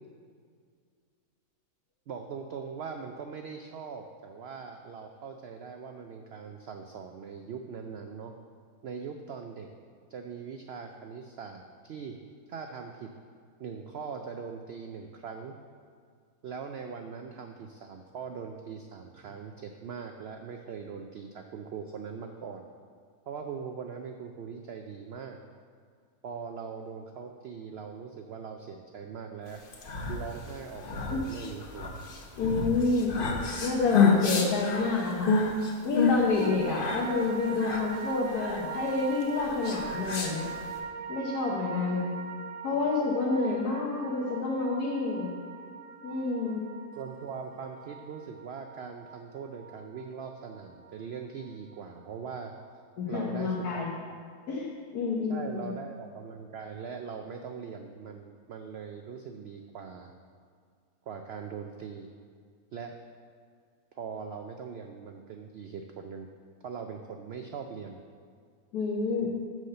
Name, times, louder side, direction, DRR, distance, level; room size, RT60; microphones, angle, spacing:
voice 1, 2.1-8.3 8.8-9.7 10.1-12.2 12.5-13.1 13.6-15.5 16.4-22.7 23.3-25.4 26.2-29.6 30.1-31.9 47.0-52.5 53.1-53.8 55.3-60.1 61.1-62.1 62.7-63.0 63.9-66.3 66.6-68.0 69.2-69.3, right 6 dB, 85° right, 4 dB, 0.5 m, -41 dB
sound 1, 29.6-40.8, left 5 dB, 45° left, 0.8 m, -29 dB
voice 2, 32.4-33.1 33.6-35.3 35.8-40.5 41.1-42.0 42.6-45.3 46.0-46.6 53.0-53.9 54.5-55.7 68.7-69.3, left 3 dB, 85° left, -3 dB, 1.5 m, -29 dB
sound 2, 36.4-52.7 53.0-53.1, right 6 dB, 70° right, 0.9 m, -41 dB
6.1 x 5.7 x 6.6 m, 2.1 s
omnidirectional pair, 1.6 m